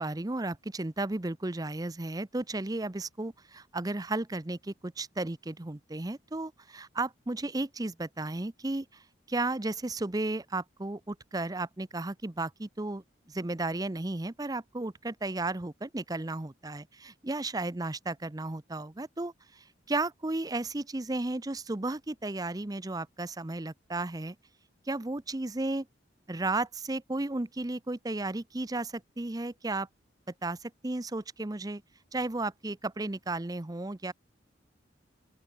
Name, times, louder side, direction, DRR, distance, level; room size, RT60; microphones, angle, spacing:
voice 1, 0.0-9.0 9.3-24.4 24.9-25.9 26.3-29.9 30.4-31.8 32.1-34.1, right 2 dB, 20° right, 0.7 m, -34 dB
open air
head